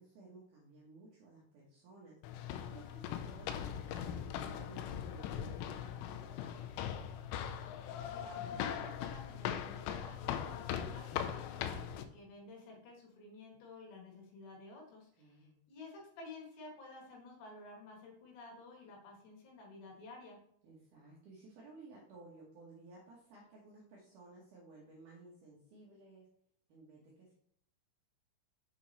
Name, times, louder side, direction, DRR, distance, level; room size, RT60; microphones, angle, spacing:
voice 1, 0.0-2.5 2.7-6.9 15.2-15.6 20.6-26.2 26.7-27.3, right 2 dB, 80° right, -4 dB, 1.7 m, -57 dB
sound 1, 2.2-12.0, left 9 dB, 90° left, 2.5 m, -40 dB
voice 2, 8.0-20.4, left 3 dB, 70° left, -1 dB, 3.5 m, -53 dB
7.3 x 4.9 x 4.1 m, 0.68 s
omnidirectional pair, 5.6 m